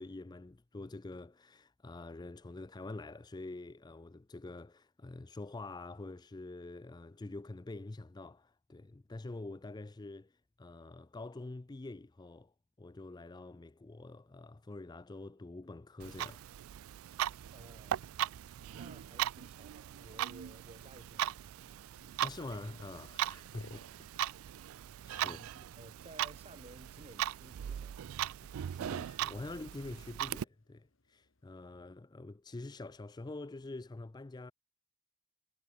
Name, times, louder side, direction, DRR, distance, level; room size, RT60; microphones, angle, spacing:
voice 1, 0.0-12.5 12.8-16.5 22.0-24.1 25.1-25.4 28.5-34.5, left 2 dB, 20° left, 0.4 m, -46 dB
Clock, 16.0-30.4, right 11 dB, 80° right, 0.3 m, -39 dB
voice 2, 17.5-18.1 18.7-21.7 25.2-28.2, right 1 dB, 30° right, 4.4 m, -56 dB
sound 1, 18.8-31.7, left 2 dB, 65° left, 1.7 m, -67 dB
head